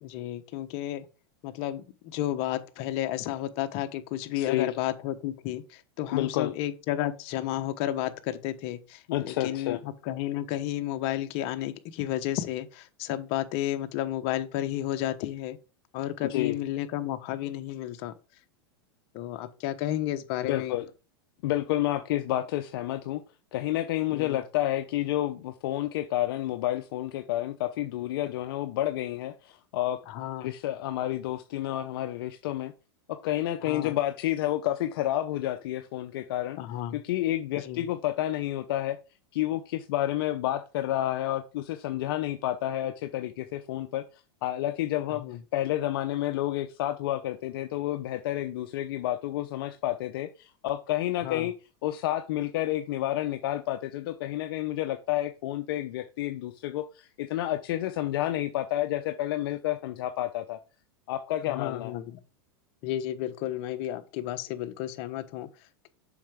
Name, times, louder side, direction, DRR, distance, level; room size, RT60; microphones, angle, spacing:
voice 1, 0.0-1.1 1.4-15.6 15.9-18.1 19.1-20.8 24.1-24.4 30.1-30.5 33.6-34.0 36.6-37.0 37.6-37.9 45.1-45.4 51.2-51.5 61.4-62.2 62.8-65.9, left 13 dB, 50° left, 1.1 m, -32 dB
voice 2, 4.4-4.7 6.1-6.5 9.1-9.8 16.3-16.6 20.5-20.8 21.4-23.2 23.5-30.0 30.4-32.7 33.1-36.6 36.9-39.0 39.3-44.0 44.4-45.2 45.5-51.5 51.8-60.6 61.1-61.9, left 14 dB, 65° left, 0.7 m, -30 dB
7.1 x 5.7 x 3.6 m
hypercardioid pair, 120°, 13 cm